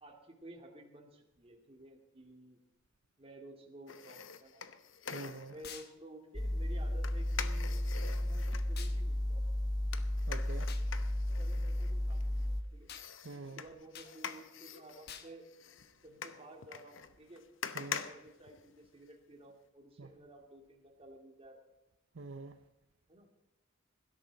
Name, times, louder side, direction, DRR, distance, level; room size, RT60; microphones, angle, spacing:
voice 1, 0.0-2.6 3.2-4.6 5.5-9.5 11.4-12.9 13.3-15.4 16.0-17.4 17.8-21.7 23.1-23.3, right 1 dB, 30° right, 2.4 m, -54 dB
sound 1, 3.9-5.7 7.0-8.7 9.9-12.4 12.9-19.1 19.5-19.6, left 7 dB, 70° left, 0.9 m, -45 dB
voice 2, 5.1-5.5 10.3-10.7 13.2-13.6 17.7-18.0 20.0-20.1 22.2-22.6, right 3 dB, 70° right, 0.7 m, -45 dB
sound 2, 5.6-5.9 8.8-9.0 10.7-10.9 12.9-13.1 13.9-14.1 15.1-15.3, left 8 dB, 55° left, 1.2 m, -48 dB
sound 3, 6.3-12.6, left 1 dB, 20° left, 1.0 m, -33 dB
17.0 x 12.5 x 4.0 m
head